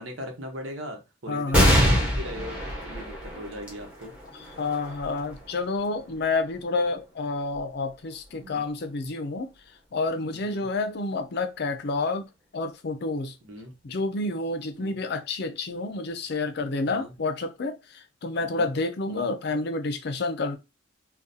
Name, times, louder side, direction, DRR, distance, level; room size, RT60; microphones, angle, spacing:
voice 1, 0.0-4.1 6.0-6.1 8.3-8.7 10.3-10.7 13.4-13.7 14.8-15.0 16.7-17.1 18.5-18.7 19.1-19.3, equal, 80° right, 1.0 m, -40 dB
voice 2, 1.3-1.7 4.6-9.5 9.9-12.3 12.5-13.4 13.8-20.6, left 3 dB, 55° left, 0.5 m, -29 dB
sound 1, 1.5-8.4 9.0-9.1 10.2-10.8, equal, 5° right, 1.1 m, -27 dB
3.7 x 2.3 x 2.7 m
head